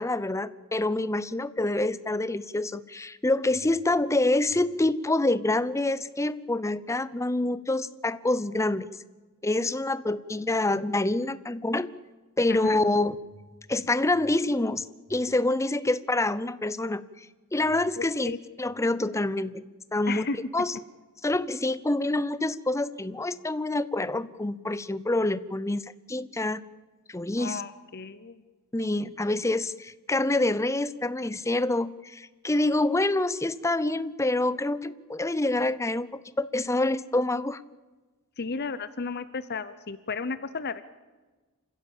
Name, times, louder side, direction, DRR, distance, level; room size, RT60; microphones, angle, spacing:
voice 1, 0.0-8.9 9.4-11.9 12.4-13.2 13.7-14.8 15.1-17.0 17.5-19.6 19.9-20.3 20.5-20.7 21.2-26.6 27.1-27.6 28.7-36.1 36.4-37.6, left 2 dB, 15° left, 16 dB, 0.7 m, -26 dB
voice 2, 18.0-18.4 20.1-20.4 27.4-28.4 38.4-40.8, left 4 dB, 50° left, 14 dB, 0.8 m, -34 dB
28.0 x 15.5 x 7.3 m, 1.3 s
head